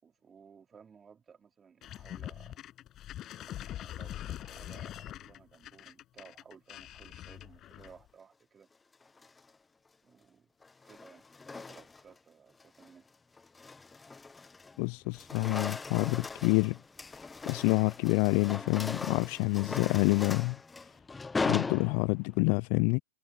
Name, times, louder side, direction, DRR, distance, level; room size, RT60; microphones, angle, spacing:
voice 1, 0.0-2.6 3.4-8.7 10.0-10.5 10.8-13.1, right 6 dB, 20° right, 4.4 m, -57 dB
sound 1, 1.8-8.1, left 12 dB, 30° left, 6.4 m, -43 dB
sound 2, 9.0-9.5 10.6-12.2 12.6-12.9 13.4-14.8 15.1-22.4, left 4 dB, 10° left, 0.7 m, -39 dB
voice 2, 14.8-16.8 17.5-20.6 21.5-23.0, left 32 dB, 45° left, 0.5 m, -27 dB
hypercardioid pair, 110°, 0 cm